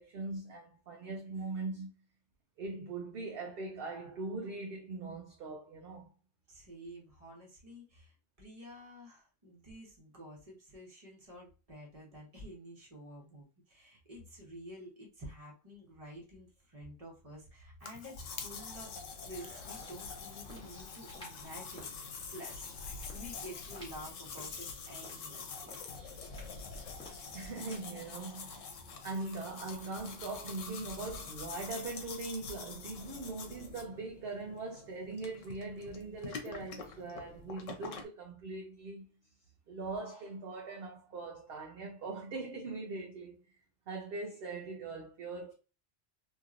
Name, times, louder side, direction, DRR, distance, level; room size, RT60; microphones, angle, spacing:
voice 1, 0.0-1.9 2.6-6.1 27.3-39.1 39.7-43.4 43.9-45.5, right 3 dB, 60° right, 0.7 m, -41 dB
voice 2, 6.5-19.0 19.2-21.9 22.3-22.7 23.1-25.8, equal, 30° right, 1.1 m, -50 dB
Hands, 17.8-24.7, left 5 dB, 55° left, 0.5 m, -51 dB
sound 1, 18.2-38.0, left 5 dB, 85° left, 1.1 m, -46 dB
sound 2, 19.3-27.8, left 1 dB, 5° left, 1.1 m, -56 dB
2.9 x 2.8 x 2.4 m
omnidirectional pair, 1.3 m